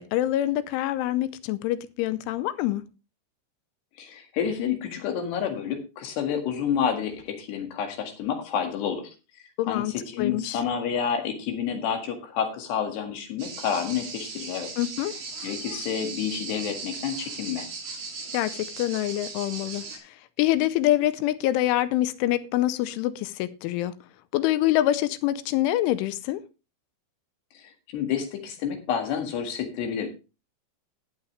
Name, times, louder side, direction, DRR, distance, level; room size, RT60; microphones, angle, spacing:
voice 1, 0.0-2.8 9.6-10.6 14.8-15.1 18.3-19.9 20.4-23.9 24.3-26.4, left 14 dB, 85° left, 3.2 m, -25 dB
voice 2, 4.0-9.1 9.6-14.7 15.4-17.7 27.6-30.1, left 8 dB, 65° left, 3.8 m, -29 dB
sound 1, 13.4-20.0, right 4 dB, 45° right, 3.8 m, -38 dB
18.5 x 6.9 x 3.2 m
omnidirectional pair, 5.5 m